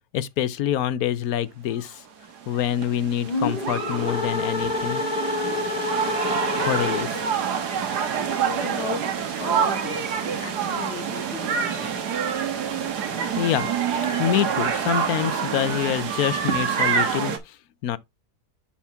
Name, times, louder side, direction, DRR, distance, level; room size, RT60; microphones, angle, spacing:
voice 1, 0.1-2.0 2.5-5.0 6.6-7.2 13.4-13.7 14.2-17.6 17.8-18.0, left 11 dB, 70° left, 1.1 m, -26 dB
sound 1, 2.2-17.4, right 7 dB, 75° right, 1.8 m, -27 dB
sound 2, 3.2-7.4, left 2 dB, 25° left, 1.5 m, -27 dB
voice 2, 7.0-7.3 8.3-9.0 9.4-12.0, left 4 dB, 45° left, 2.2 m, -36 dB
7.1 x 5.9 x 3.4 m
omnidirectional pair, 1.8 m